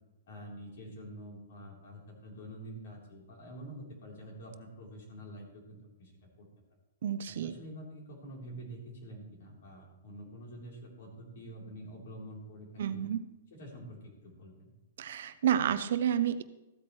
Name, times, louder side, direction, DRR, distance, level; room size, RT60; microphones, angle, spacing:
voice 1, 0.3-6.5 7.3-13.0 13.5-14.7, right 1 dB, 50° left, -1 dB, 3.4 m, -47 dB
voice 2, 7.0-7.5 12.8-13.3 15.0-16.4, right 9 dB, 50° right, 12 dB, 0.5 m, -30 dB
14.5 x 8.5 x 3.1 m, 0.99 s
hypercardioid pair, 175°, 0 cm